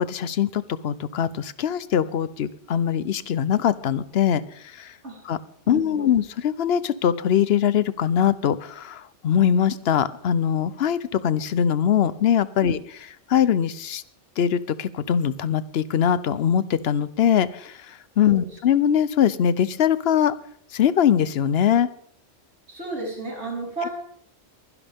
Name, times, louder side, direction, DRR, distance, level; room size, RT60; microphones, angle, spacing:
voice 1, 0.0-4.9 5.2-5.4 5.7-12.8 13.3-14.0 14.4-20.3 20.7-21.9, left 9 dB, 65° left, 16 dB, 0.9 m, -22 dB
voice 2, 5.7-6.1 12.6-12.7 18.2-18.5 22.7-23.9, right 3 dB, 65° right, -2 dB, 4.6 m, -33 dB
22.5 x 11.0 x 3.5 m, 0.63 s
omnidirectional pair, 1.2 m